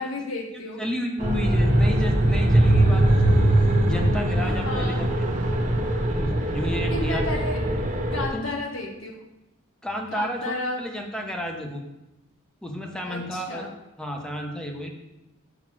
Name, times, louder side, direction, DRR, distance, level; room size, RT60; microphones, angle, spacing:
voice 1, 0.0-0.8 4.3-5.1 6.9-7.6 8.1-9.1 10.1-10.8 13.1-13.7, left 2 dB, 80° left, 0 dB, 1.3 m, -32 dB
voice 2, 0.5-3.4 3.8-5.3 6.1-7.2 8.1-8.5 9.8-11.8 12.6-13.7 14.0-14.9, equal, 5° left, 2 dB, 0.9 m, -32 dB
sound 1, 1.2-8.3, right 1 dB, 40° right, 1.0 m, -21 dB
5.9 x 5.3 x 6.2 m, 0.94 s
head